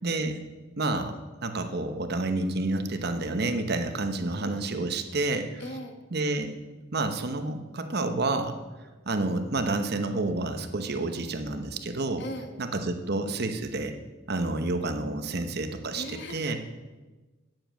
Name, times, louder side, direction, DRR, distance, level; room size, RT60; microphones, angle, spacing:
voice 1, 0.0-0.4 0.8-5.6 6.1-6.5 6.9-8.6 9.1-12.2 12.6-13.9 14.3-16.6, right 2 dB, 55° right, 7 dB, 0.9 m, -29 dB
voice 2, 5.6-5.9 12.2-12.5 15.9-16.6, equal, 60° left, 6 dB, 1.3 m, -38 dB
9.1 x 7.7 x 7.5 m, 1.2 s
head